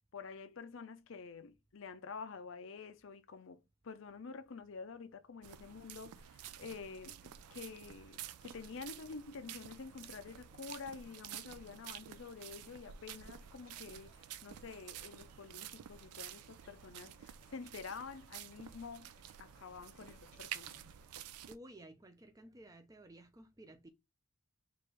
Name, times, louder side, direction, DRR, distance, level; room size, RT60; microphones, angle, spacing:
voice 1, 0.1-19.1 19.4-20.8, left 5 dB, 60° left, 0.5 m, -49 dB
sound 1, 5.4-21.6, right 10 dB, 90° right, 0.4 m, -50 dB
sound 2, 6.5-21.1, equal, 35° right, 2.4 m, -69 dB
voice 2, 21.5-23.9, right 1 dB, 15° right, 0.4 m, -55 dB
4.6 x 2.5 x 3.3 m
head